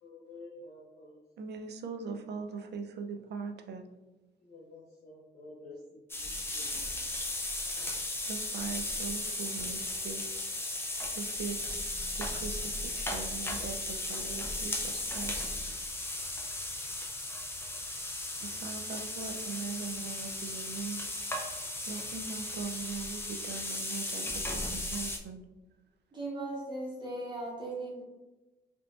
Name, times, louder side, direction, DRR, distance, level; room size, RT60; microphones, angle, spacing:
voice 1, 0.0-1.2 4.4-7.0, left 2 dB, 60° left, -6 dB, 0.6 m, -50 dB
voice 2, 1.4-3.8 8.2-10.2 11.1-11.8 12.1-15.4 18.4-21.0 21.8-25.4, right 5 dB, 65° right, 4 dB, 0.4 m, -41 dB
sound 1, 6.1-25.2, left 2 dB, 10° left, 0.3 m, -36 dB
voice 3, 26.1-28.0, right 2 dB, 25° right, -5 dB, 0.9 m, -38 dB
3.6 x 2.4 x 2.3 m, 1.1 s
wide cardioid pair, 165°, 19 cm